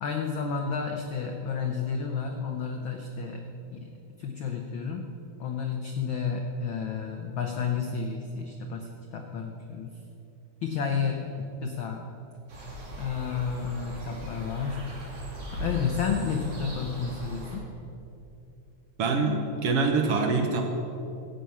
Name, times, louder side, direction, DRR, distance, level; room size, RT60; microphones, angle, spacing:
voice 1, 0.0-3.5 3.7-5.1 5.4-10.0 10.6-11.3 11.6-12.1 13.0-14.9 15.5-17.7, left 6 dB, 80° left, 3 dB, 1.1 m, -31 dB
sound 1, 12.5-17.6, equal, 85° right, 4.3 m, -38 dB
voice 2, 19.0-20.6, right 4 dB, 65° right, 3 dB, 1.7 m, -25 dB
14.5 x 9.1 x 5.7 m, 2.8 s
omnidirectional pair, 3.4 m